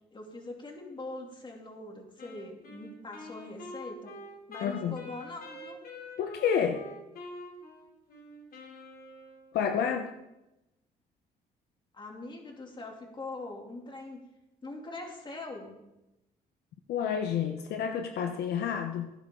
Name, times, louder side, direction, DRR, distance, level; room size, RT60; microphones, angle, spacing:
voice 1, 0.1-4.1 4.5-5.8 11.9-14.2 14.6-15.8, left 2 dB, 30° left, 1 dB, 3.1 m, -42 dB
Wind instrument woodwind instrument, 2.2-9.7, left 2 dB, 65° left, 3.5 m, -46 dB
voice 2, 4.6-5.0 6.2-6.9 9.5-10.1 16.9-19.1, left 7 dB, 80° left, 5 dB, 1.1 m, -29 dB
16.5 x 10.5 x 3.9 m, 0.93 s
cardioid pair, 95°, 17 cm